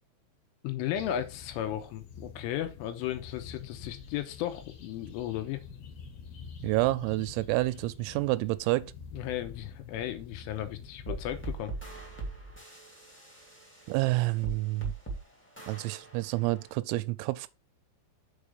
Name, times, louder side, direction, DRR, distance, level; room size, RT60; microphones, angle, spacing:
voice 1, 0.6-5.6 9.1-11.7, left 12 dB, 80° left, 3.3 m, -35 dB
sound 1, 0.9-11.6, left 6 dB, 65° left, 3.2 m, -47 dB
voice 2, 6.6-8.9 13.9-14.9 15.7-17.5, right 20 dB, 90° right, 3.4 m, -29 dB
sound 2, 11.1-16.7, right 3 dB, 10° left, 0.7 m, -41 dB
7.2 x 5.0 x 5.1 m
omnidirectional pair, 5.9 m